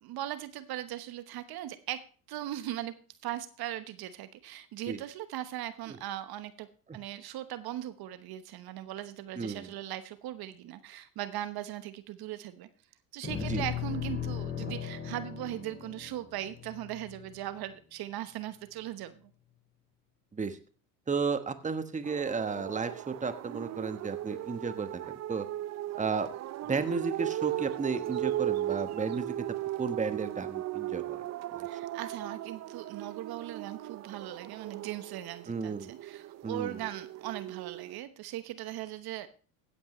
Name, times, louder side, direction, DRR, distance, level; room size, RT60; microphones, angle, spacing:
voice 1, 0.0-2.0 2.3-2.9 3.2-6.7 6.9-12.7 13.1-19.2 31.6-39.3, right 13 dB, 55° right, 11 dB, 1.1 m, -39 dB
voice 2, 9.4-9.7 13.5-13.6 14.6-14.7 20.3-20.6 21.1-25.5 26.0-26.3 26.7-29.4 29.8-31.2 31.6-31.7 35.5-35.9 36.4-36.8, right 5 dB, 15° right, 10 dB, 1.2 m, -33 dB
sound 1, 13.2-17.7, left 8 dB, 30° left, 3.8 m, -37 dB
sound 2, 22.0-38.0, right 13 dB, 35° right, 0.6 m, -37 dB
16.0 x 8.6 x 3.1 m, 0.40 s
hypercardioid pair, 70°, 45 cm